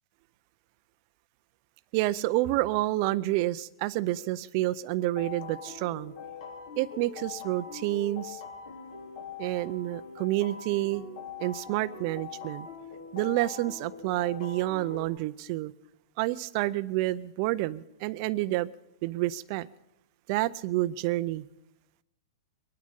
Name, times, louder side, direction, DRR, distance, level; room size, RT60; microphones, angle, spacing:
voice 1, 1.9-6.1 6.8-8.4 9.4-11.0 11.4-12.7 13.1-15.7 16.2-18.7 19.0-19.7 20.3-21.5, right 17 dB, 45° right, 0.5 m, -29 dB
sound 1, 5.0-15.1, left 6 dB, 70° left, 3.8 m, -43 dB
23.0 x 9.6 x 5.3 m
hypercardioid pair, 135°, 3 cm